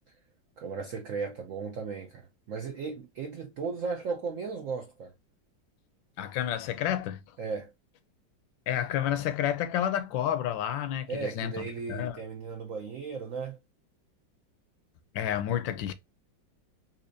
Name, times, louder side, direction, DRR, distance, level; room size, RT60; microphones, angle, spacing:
voice 1, 0.6-5.1 7.4-7.7 11.1-13.6, right 5 dB, 75° right, 0.7 m, -36 dB
voice 2, 6.2-7.2 8.7-12.2 15.1-15.9, left 10 dB, 90° left, 1.3 m, -30 dB
4.3 x 2.7 x 2.5 m
omnidirectional pair, 2.0 m